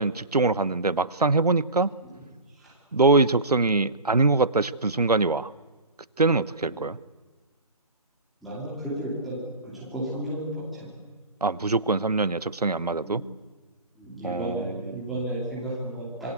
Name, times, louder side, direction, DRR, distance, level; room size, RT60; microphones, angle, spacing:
voice 1, 0.0-1.9 2.9-5.5 6.2-7.0 11.4-13.2 14.2-14.6, right 3 dB, 80° right, 19 dB, 1.1 m, -23 dB
voice 2, 2.0-2.7 6.6-6.8 8.4-10.9 12.9-13.2 13.9-16.3, right 1 dB, ahead, -10 dB, 2.8 m, -34 dB
27.0 x 22.5 x 8.1 m, 1.4 s
figure-of-eight pair, 165°, 20 cm